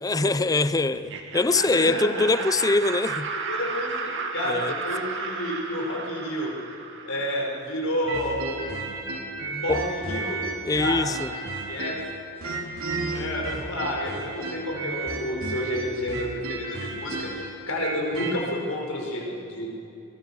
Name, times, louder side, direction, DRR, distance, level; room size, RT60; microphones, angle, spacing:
voice 1, 0.0-3.3 4.5-4.7 9.7-9.8 10.6-11.3, left 3 dB, 15° left, 15 dB, 0.5 m, -23 dB
Laughter, 0.9-7.7, right 4 dB, 60° right, 2.0 m, -33 dB
voice 2, 1.5-2.3 3.5-6.5 7.1-8.6 9.6-10.4 10.7-11.0 11.7-12.0 13.1-19.7, left 1 dB, 65° left, -1 dB, 5.7 m, -30 dB
sound 1, 8.1-12.1 12.4-18.4, right 3 dB, 75° right, 3.7 m, -33 dB
22.5 x 19.5 x 7.2 m, 2.8 s
head